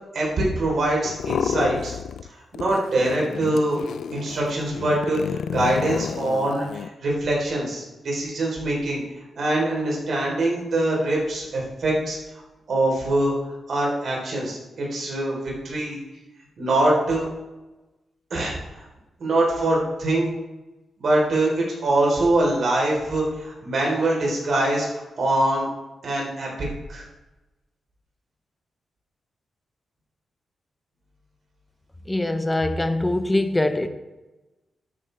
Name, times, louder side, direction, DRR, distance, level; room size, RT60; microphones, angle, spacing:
voice 1, 0.1-1.9 2.5-3.8 4.1-9.0 9.4-12.2 12.7-13.3 13.7-16.0 16.6-17.3 18.3-18.8 19.2-20.3 21.0-24.9 25.2-25.7 26.0-27.0, right 1 dB, 55° right, -3 dB, 3.8 m, -23 dB
sound 1, 1.0-2.3 2.5-6.9, left 8 dB, 85° left, 0.3 m, -31 dB
voice 2, 32.1-33.9, left 1 dB, 10° left, 8 dB, 0.7 m, -23 dB
12.5 x 8.4 x 3.4 m, 1.1 s
wide cardioid pair, 140°, 0 cm